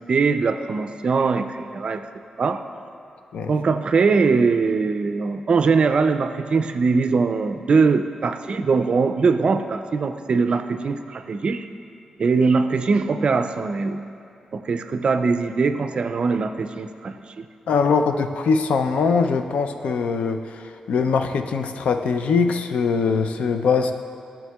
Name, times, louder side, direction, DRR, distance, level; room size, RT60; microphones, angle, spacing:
voice 1, 0.1-2.0 2.4-2.6 3.5-11.7 12.2-14.0 14.5-17.4, right 4 dB, 50° right, 9 dB, 0.4 m, -21 dB
voice 2, 17.7-23.9, left 5 dB, 80° left, 7 dB, 0.4 m, -22 dB
12.0 x 7.4 x 2.3 m, 2.6 s
cardioid pair, 95°, 2 cm